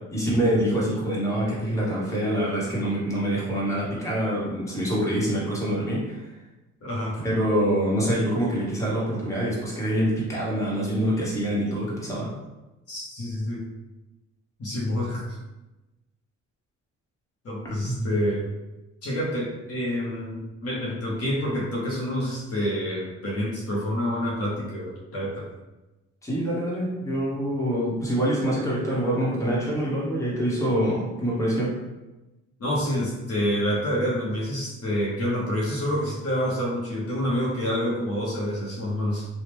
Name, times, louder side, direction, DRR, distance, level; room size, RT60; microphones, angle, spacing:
voice 1, 0.1-6.2 7.2-12.4 17.8-18.0 26.2-31.7, equal, 10° left, -6 dB, 1.2 m, -25 dB
voice 2, 6.8-7.2 12.9-13.6 14.6-15.2 17.4-18.4 19.0-25.5 32.6-39.3, equal, 50° left, -5 dB, 1.0 m, -27 dB
3.1 x 2.3 x 3.4 m, 1.1 s
cardioid pair, 90°, 30 cm